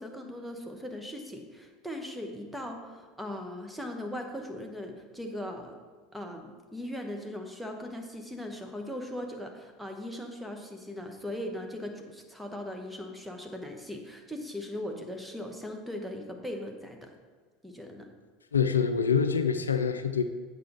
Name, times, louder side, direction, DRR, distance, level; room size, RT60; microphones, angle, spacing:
voice 1, 0.0-5.8 6.1-17.1 17.6-18.1, left 1 dB, 5° right, 3 dB, 1.2 m, -39 dB
voice 2, 18.5-20.2, left 6 dB, 80° left, 10 dB, 0.4 m, -25 dB
8.2 x 6.8 x 4.1 m, 1.5 s
figure-of-eight pair, 75°, 0 cm